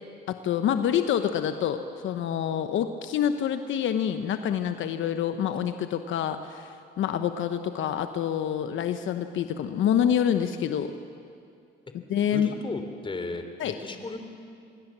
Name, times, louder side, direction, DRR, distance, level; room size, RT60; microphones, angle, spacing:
voice 1, 0.3-10.9 12.1-12.5 13.6-13.7, left 9 dB, 75° left, 8 dB, 1.1 m, -27 dB
voice 2, 12.3-14.2, left 3 dB, 25° left, 6 dB, 3.2 m, -35 dB
26.0 x 22.0 x 7.5 m, 2.4 s
cardioid pair, 90°, 20 cm